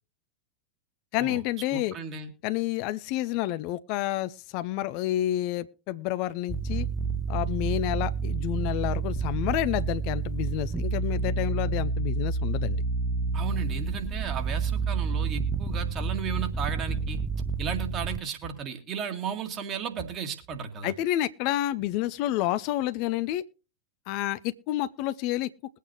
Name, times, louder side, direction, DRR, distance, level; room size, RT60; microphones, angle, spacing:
voice 1, 1.1-1.9 2.4-6.9 7.3-12.8 20.8-23.4 24.1-25.5, left 14 dB, 45° left, 0.5 m, -29 dB
voice 2, 1.7-2.3 13.3-17.2 17.6-20.9, right 7 dB, 30° right, 2.0 m, -34 dB
sound 1, 6.5-18.2, right 4 dB, 10° right, 0.6 m, -29 dB
21.5 x 8.4 x 3.0 m
figure-of-eight pair, 90°, 0 cm